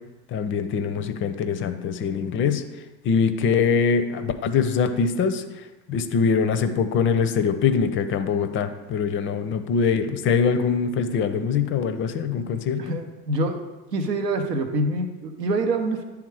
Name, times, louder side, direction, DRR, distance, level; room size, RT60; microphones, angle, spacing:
voice 1, 0.3-2.6 3.0-12.9, left 6 dB, 25° left, 10 dB, 0.4 m, -23 dB
voice 2, 12.8-13.6 13.9-16.0, right 2 dB, 90° right, 6 dB, 0.8 m, -25 dB
9.2 x 3.5 x 4.7 m, 1.1 s
hypercardioid pair, 85°, 48 cm